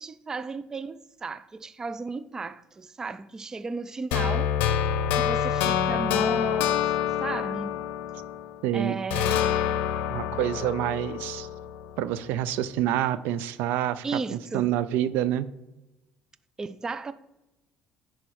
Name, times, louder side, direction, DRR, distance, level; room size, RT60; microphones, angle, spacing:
voice 1, 0.0-4.5 5.1-6.9 7.2-7.8 8.7-9.5 14.0-14.7 16.6-17.1, right 4 dB, 20° right, 0.3 m, -34 dB
sound 1, 4.1-8.6 9.1-12.2, left 9 dB, 85° left, 0.6 m, -27 dB
voice 2, 8.6-9.0 10.1-11.5 12.0-15.5, right 12 dB, 80° right, 0.4 m, -27 dB
10.5 x 4.3 x 4.4 m
cardioid pair, 125°, 3 cm